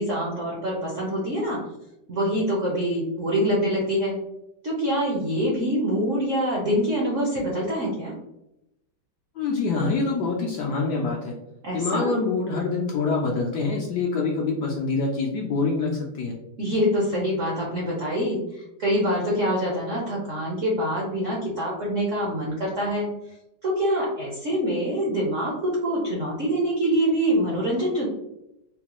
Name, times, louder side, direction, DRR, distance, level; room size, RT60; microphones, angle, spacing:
voice 1, 0.0-1.6 2.1-4.1 4.6-8.1 11.6-12.1 16.6-23.1 23.6-28.1, equal, 65° right, -4 dB, 0.7 m, -25 dB
voice 2, 9.4-11.4 11.7-16.4, left 4 dB, 75° left, -1 dB, 0.9 m, -25 dB
4.0 x 2.2 x 2.9 m, 0.87 s
omnidirectional pair, 2.2 m